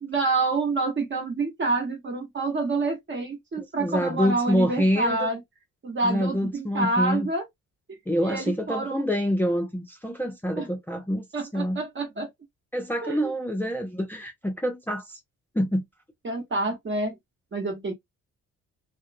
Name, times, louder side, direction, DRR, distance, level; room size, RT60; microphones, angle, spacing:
voice 1, 0.0-5.4 5.8-7.5 7.9-9.1 10.6-10.7 11.3-12.3 13.0-13.3 16.2-17.2 17.5-17.9, right 3 dB, 40° right, 1.2 m, -28 dB
voice 2, 3.8-5.3 6.0-7.3 8.1-11.2 11.5-11.8 12.7-15.2 15.6-15.8, equal, 5° left, 0.6 m, -26 dB
2.4 x 2.1 x 2.6 m
cardioid pair, 90°, 30 cm